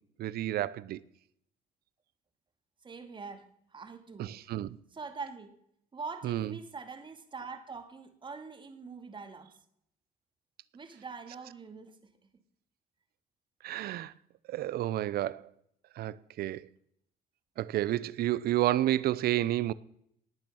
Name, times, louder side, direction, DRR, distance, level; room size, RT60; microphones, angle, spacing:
voice 1, 0.2-1.0 4.2-4.7 6.2-6.5 13.6-14.1 14.5-15.4 16.0-16.6 17.6-19.7, right 14 dB, 65° right, 0.7 m, -30 dB
voice 2, 2.8-4.4 4.9-5.5 5.9-9.6 10.7-12.0, right 4 dB, 30° right, 2.3 m, -44 dB
19.0 x 9.0 x 7.2 m
cardioid pair, 110°, 17 cm